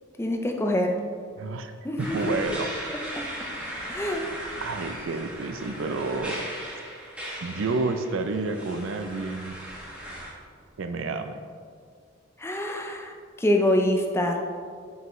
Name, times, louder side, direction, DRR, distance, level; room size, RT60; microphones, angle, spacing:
voice 1, 0.2-0.9 1.8-2.6 2.9-3.2 3.9-4.2 12.4-14.4, left 1 dB, 10° left, 3 dB, 0.5 m, -26 dB
voice 2, 1.4-1.7 2.0-2.7 4.6-6.4 7.4-9.6 10.8-11.4, right 3 dB, 70° right, 8 dB, 0.5 m, -30 dB
sound 1, 2.0-10.3, right 1 dB, 5° right, 1.4 m, -37 dB
7.7 x 5.5 x 3.1 m, 2.1 s
head